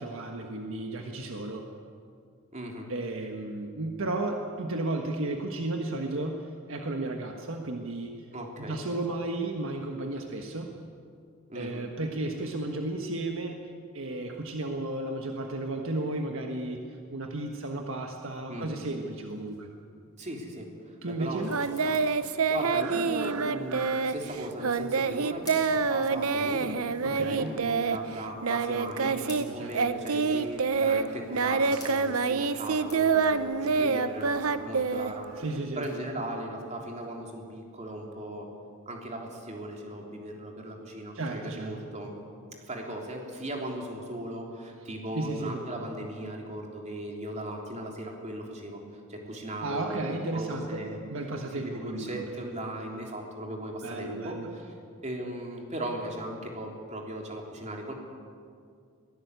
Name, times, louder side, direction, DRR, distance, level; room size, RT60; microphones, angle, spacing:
voice 1, 0.0-1.6 2.9-8.2 8.6-10.7 11.5-16.8 17.1-19.7 21.0-21.5 27.0-27.6 29.0-29.7 35.4-35.8 41.1-41.8 45.1-45.6 49.6-52.2 53.8-54.5, right 2 dB, 65° right, 3 dB, 1.5 m, -34 dB
voice 2, 2.5-2.9 8.3-8.8 11.5-11.8 18.5-18.8 20.2-21.6 21.8-26.8 27.1-29.1 29.5-35.3 35.8-38.5 38.9-42.1 42.7-48.8 49.1-51.0 51.5-54.7 55.0-57.9, right 1 dB, 35° right, 0 dB, 3.5 m, -38 dB
sound 1, 18.2-38.0, left 4 dB, 20° left, 6.5 m, -54 dB
Singing, 21.5-29.5 29.7-35.6, right 5 dB, 85° right, 0.9 m, -27 dB
22.5 x 17.0 x 8.3 m, 2.3 s
head